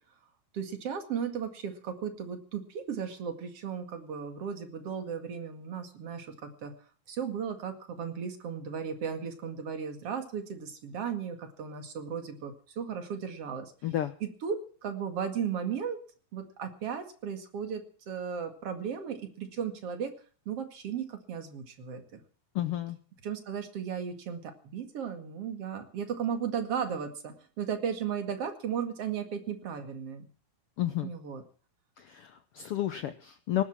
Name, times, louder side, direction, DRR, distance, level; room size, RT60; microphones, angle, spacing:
voice 1, 0.5-6.7 7.1-13.6 14.2-16.0 16.3-20.1 20.5-22.2 23.2-30.3 31.0-31.4, right 7 dB, 50° right, 6 dB, 2.9 m, -35 dB
voice 2, 13.8-14.1 22.5-23.0 30.8-31.1 32.0-33.6, left 12 dB, 80° left, 11 dB, 1.3 m, -31 dB
19.0 x 11.5 x 6.0 m, 0.42 s
omnidirectional pair, 3.7 m